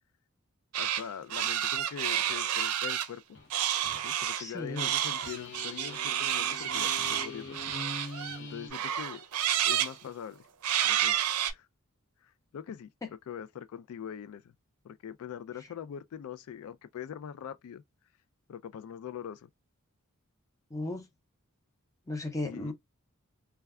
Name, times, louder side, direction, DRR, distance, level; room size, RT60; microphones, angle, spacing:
voice 1, 0.7-3.2 4.0-7.6 8.4-9.2 9.7-10.4 10.8-11.2 11.5-11.7 12.2-12.9 13.3-14.4 14.8-17.8 18.5-19.5 22.4-22.7, left 8 dB, 70° left, 0.3 m, -42 dB
sound 1, 0.7-1.0 1.3-3.1 3.5-4.4 4.8-8.4 8.7-9.9 10.6-11.5, right 10 dB, 80° right, 0.5 m, -30 dB
sound 2, 3.3-3.5 3.8-4.0 5.2-8.7, left 3 dB, 55° left, 0.7 m, -43 dB
voice 2, 4.4-4.9 13.0-13.1 20.7-21.1 22.1-22.7, left 2 dB, 15° left, 0.6 m, -35 dB
2.2 x 2.1 x 3.4 m
head